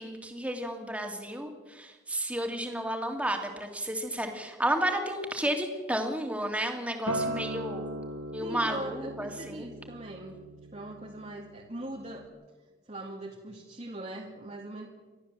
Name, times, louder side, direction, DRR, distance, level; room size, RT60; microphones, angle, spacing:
voice 1, 0.0-7.9 8.3-9.7, right 1 dB, 5° right, 3 dB, 2.7 m, -32 dB
Acoustic guitar, 7.1-12.3, right 1 dB, 80° right, 2.0 m, -38 dB
voice 2, 8.4-10.4 10.7-12.3 12.9-14.9, right 1 dB, 35° right, -2 dB, 2.1 m, -41 dB
30.0 x 13.5 x 7.6 m, 1.3 s
head